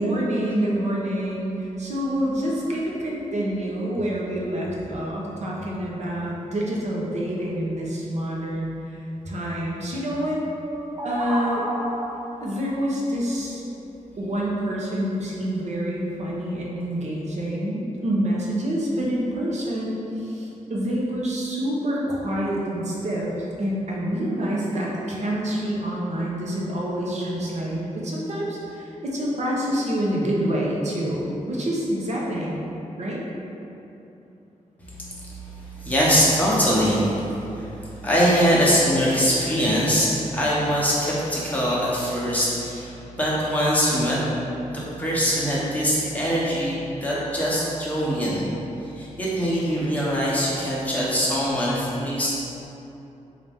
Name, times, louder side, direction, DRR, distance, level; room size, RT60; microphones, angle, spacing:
voice 1, 0.0-8.7 9.2-10.4 11.0-11.7 12.4-13.6 14.2-23.3 23.6-32.6 33.0-33.2, right 1 dB, 55° right, -4 dB, 0.7 m, -27 dB
sound 1, 10.6-12.4, equal, 25° right, 0.5 m, -30 dB
voice 2, 34.9-44.2 44.6-48.5 48.8-52.3, equal, 10° left, -8 dB, 0.9 m, -23 dB
4.0 x 2.5 x 3.4 m, 2.9 s
wide cardioid pair, 115°, 14 cm